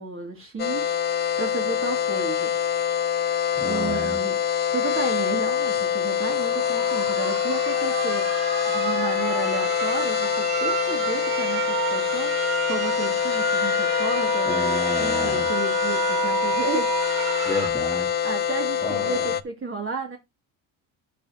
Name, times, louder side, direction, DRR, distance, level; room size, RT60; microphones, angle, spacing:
voice 1, 0.0-2.5 3.6-4.4 4.7-8.3 8.7-12.4 12.7-16.9 17.4-17.5 18.2-20.2, right 4 dB, 35° right, 2.3 m, -33 dB
sound 1, 0.6-19.4, left 9 dB, 25° left, 0.6 m, -25 dB
voice 2, 3.6-4.2 14.5-15.5 17.4-18.1 18.8-19.3, left 1 dB, 5° left, 1.8 m, -31 dB
sound 2, 6.1-17.7, right 6 dB, 60° right, 2.7 m, -30 dB
11.5 x 6.1 x 2.8 m
supercardioid pair, 90°, 39 cm